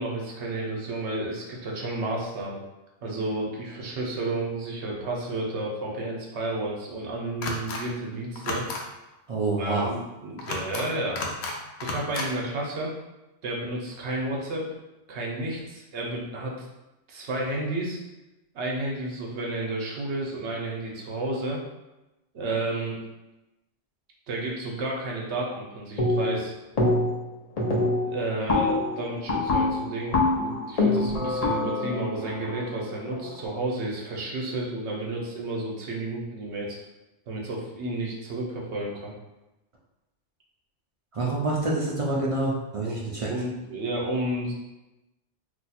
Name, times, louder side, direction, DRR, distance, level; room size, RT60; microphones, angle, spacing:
voice 1, 0.0-2.6 3.0-8.6 9.6-11.2 11.8-12.9 13.4-14.7 15.1-16.7 17.1-18.0 18.5-21.6 22.3-23.0 24.3-26.5 28.0-36.8 37.3-39.1 42.8-43.0 43.3-44.5, right 2 dB, 70° right, -2 dB, 1.1 m, -31 dB
sound 1, 7.4-7.8 8.4-8.8 10.4-10.9 11.2-11.5 11.8-12.3, left 3 dB, 70° left, 0.8 m, -32 dB
voice 2, 9.3-9.9 41.1-43.3, right 2 dB, 50° right, -4 dB, 0.4 m, -27 dB
sound 2, 26.0-26.4 26.8-27.3 27.6-33.4, left 2 dB, 40° left, 0.6 m, -25 dB
2.7 x 2.3 x 4.1 m, 1.0 s
omnidirectional pair, 1.2 m